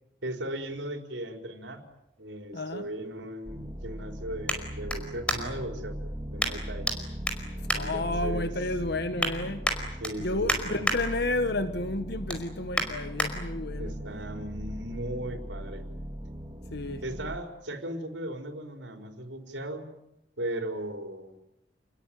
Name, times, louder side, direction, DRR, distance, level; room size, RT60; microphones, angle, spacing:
voice 1, 0.2-1.8 2.2-6.0 6.3-6.9 7.7-8.5 10.0-10.9 13.8-15.8 17.0-19.9 20.4-21.4, right 1 dB, 80° right, 4.9 m, -37 dB
sound 1, 1.6-5.7 6.4-7.0 7.2-8.5 8.9-9.3 9.6-11.0 11.4-11.7 12.0-13.3 13.8-13.9, equal, 5° left, 5.0 m, -32 dB
voice 2, 2.5-2.9 7.7-9.7 10.2-14.0 16.7-17.0, left 2 dB, 60° left, 1.5 m, -31 dB
sound 2, 3.4-17.4, equal, 25° right, 1.9 m, -39 dB
29.5 x 21.0 x 9.4 m
head